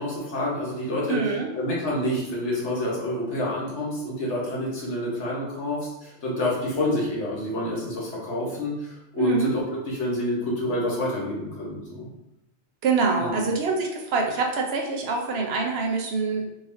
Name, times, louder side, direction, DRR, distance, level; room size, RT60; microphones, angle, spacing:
voice 1, 0.0-1.2 1.5-12.1 13.2-13.3, left 1 dB, 85° left, -5 dB, 1.4 m, -28 dB
voice 2, 1.1-1.5 9.2-9.5 12.8-16.4, right 4 dB, 65° right, 1 dB, 0.8 m, -25 dB
3.9 x 3.0 x 2.6 m, 0.90 s
omnidirectional pair, 1.2 m